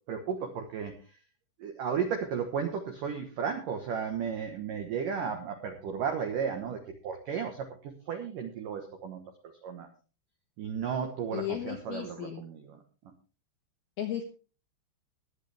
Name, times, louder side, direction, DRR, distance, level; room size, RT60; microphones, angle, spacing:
voice 1, 0.1-1.0 1.6-9.9 10.6-12.8, right 7 dB, 80° right, 5 dB, 1.9 m, -34 dB
voice 2, 11.3-12.4 14.0-14.2, left 11 dB, 75° left, 4 dB, 2.3 m, -35 dB
21.5 x 8.3 x 3.4 m, 0.35 s
omnidirectional pair, 5.9 m